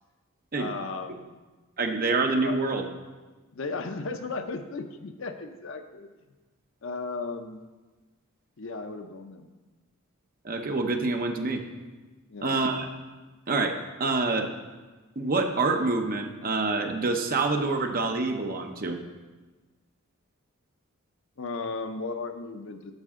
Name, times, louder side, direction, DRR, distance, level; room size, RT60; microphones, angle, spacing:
voice 1, 0.5-1.3 2.4-2.6 3.5-6.1 6.8-7.6 8.6-9.5 12.3-12.5 21.4-22.9, left 3 dB, 60° left, 7 dB, 0.7 m, -35 dB
voice 2, 1.8-2.9 10.4-11.6 12.4-12.9 13.5-14.5 15.2-19.0, right 3 dB, 40° right, 4 dB, 0.8 m, -26 dB
11.5 x 6.7 x 3.7 m, 1.3 s
head